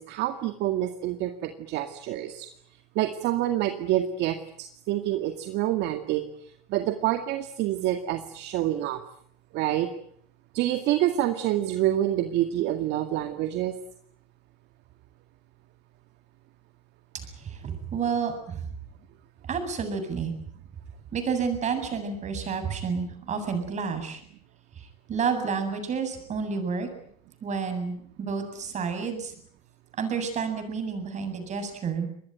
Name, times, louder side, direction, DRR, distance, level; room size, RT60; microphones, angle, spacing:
voice 1, 0.0-2.5 3.0-6.2 6.7-9.0 9.5-9.9 10.5-13.7, right 13 dB, 55° right, 7 dB, 2.1 m, -27 dB
voice 2, 17.1-18.7 19.5-20.3 21.1-24.2 24.7-26.9 27.4-29.3 30.0-32.1, right 6 dB, 35° right, 8 dB, 7.8 m, -30 dB
25.5 x 20.5 x 9.2 m, 0.67 s
supercardioid pair, 110°, 21 cm